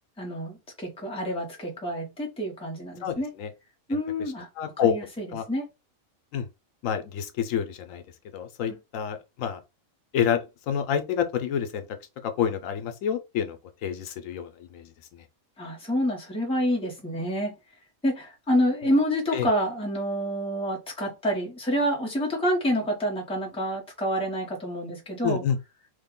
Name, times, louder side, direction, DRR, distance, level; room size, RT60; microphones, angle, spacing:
voice 1, 0.2-3.3 3.9-4.5 4.9-5.6 15.6-17.5 18.0-25.4, equal, 5° left, 0.7 m, -28 dB
voice 2, 3.0-3.5 3.9-4.0 4.6-4.9 5.3-5.4 6.3-6.5 6.8-8.0 8.3-9.6 10.1-11.8 12.2-13.6 13.8-14.9 19.3-19.5 25.2-25.6, left 8 dB, 80° left, 1.0 m, -28 dB
3.2 x 2.2 x 3.6 m
omnidirectional pair, 1.4 m